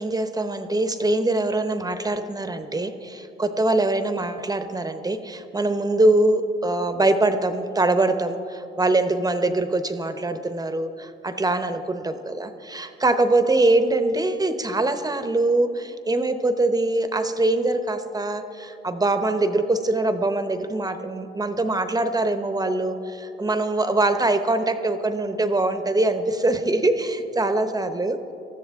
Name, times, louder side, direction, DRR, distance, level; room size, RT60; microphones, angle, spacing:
voice 1, 0.0-28.3, right 2 dB, 20° right, 9 dB, 0.8 m, -23 dB
19.5 x 13.5 x 3.5 m, 2.7 s
cardioid pair, 90°, 20 cm